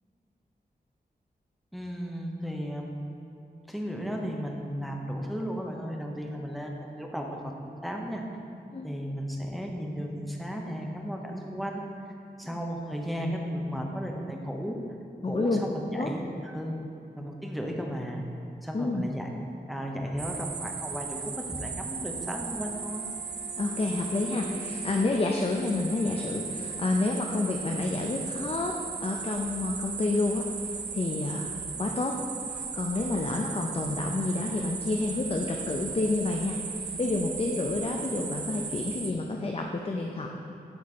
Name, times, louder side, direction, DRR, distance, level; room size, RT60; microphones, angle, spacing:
voice 1, 1.7-2.9 3.7-8.2 8.8-14.8 15.2-16.8 17.2-18.2 18.6-23.1, equal, ahead, 1 dB, 0.9 m, -35 dB
voice 2, 15.2-15.6 15.9-16.1 18.7-19.1 23.6-32.2 32.4-40.3, left 2 dB, 35° left, 1 dB, 0.5 m, -29 dB
sound 1, 20.2-39.1, right 5 dB, 80° right, 0.6 m, -37 dB
Wind instrument woodwind instrument, 22.6-27.2, left 2 dB, 60° left, 1.7 m, -47 dB
11.0 x 4.2 x 4.2 m, 2.8 s
wide cardioid pair, 85°, 17 cm